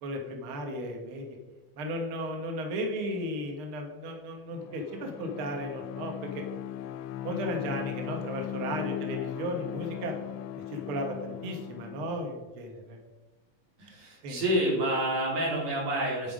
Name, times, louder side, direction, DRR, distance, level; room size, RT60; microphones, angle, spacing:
voice 1, 0.0-1.3 1.8-6.4 7.2-10.2 10.6-13.0 14.2-14.4, equal, 55° right, 2 dB, 2.0 m, -35 dB
Bowed string instrument, 4.5-12.2, left 11 dB, 80° left, 1.7 m, -38 dB
voice 2, 13.8-16.3, right 1 dB, 85° right, -4 dB, 4.8 m, -28 dB
9.2 x 9.2 x 5.0 m, 1.1 s
omnidirectional pair, 3.4 m